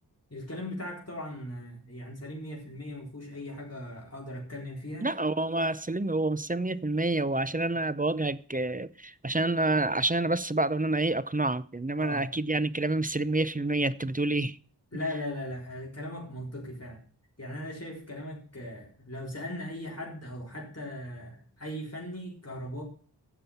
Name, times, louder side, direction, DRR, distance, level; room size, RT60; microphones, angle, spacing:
voice 1, 0.3-5.1 12.0-12.3 14.9-17.0 17.4-22.8, left 1 dB, 35° left, 4.1 m, -38 dB
voice 2, 5.0-14.6, right 2 dB, 20° right, 0.6 m, -28 dB
12.5 x 7.5 x 5.7 m
wide cardioid pair, 45°, 41 cm